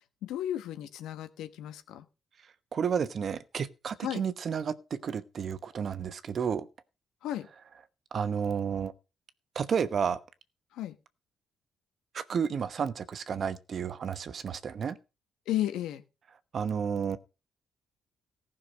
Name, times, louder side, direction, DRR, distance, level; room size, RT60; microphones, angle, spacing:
voice 1, 0.0-2.1 4.0-4.2 7.2-7.5 10.7-11.0 15.5-16.0, left 12 dB, 90° left, 1.2 m, -34 dB
voice 2, 2.7-6.7 8.1-8.9 9.5-10.2 12.1-15.0 16.5-17.2, right 7 dB, 50° right, 1.0 m, -31 dB
15.0 x 6.0 x 6.2 m
cardioid pair, 90°, 0 cm